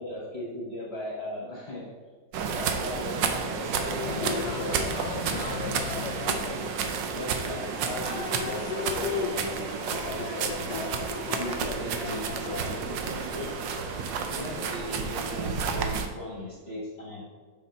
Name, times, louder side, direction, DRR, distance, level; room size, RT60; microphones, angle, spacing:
voice 1, 0.0-1.9 2.5-4.9 5.4-5.9 7.1-10.9 11.3-13.5 14.2-17.3, left 1 dB, 40° left, -3 dB, 1.1 m, -38 dB
sound 1, 2.3-16.1, right 6 dB, 75° right, 1.3 m, -31 dB
Cheering, 3.9-15.9, left 7 dB, 70° left, 1.0 m, -37 dB
6.4 x 5.3 x 4.4 m, 1.5 s
omnidirectional pair, 2.0 m